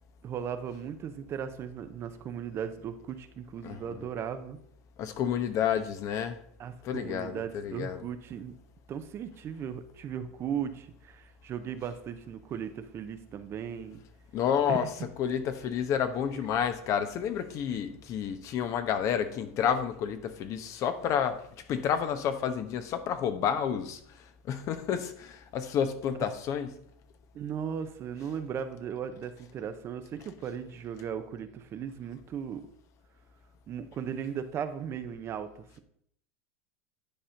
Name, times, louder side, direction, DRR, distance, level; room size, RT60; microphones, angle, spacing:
voice 1, 0.2-4.6 6.6-8.5 8.9-14.0 14.7-14.9 27.3-32.7 33.7-35.5, right 8 dB, 35° right, 9 dB, 0.8 m, -37 dB
voice 2, 5.0-6.4 6.8-8.0 14.3-14.9 15.2-21.4 21.7-26.7, left 8 dB, 45° left, 10 dB, 1.0 m, -30 dB
10.0 x 4.2 x 5.2 m, 0.67 s
supercardioid pair, 115°, 7 cm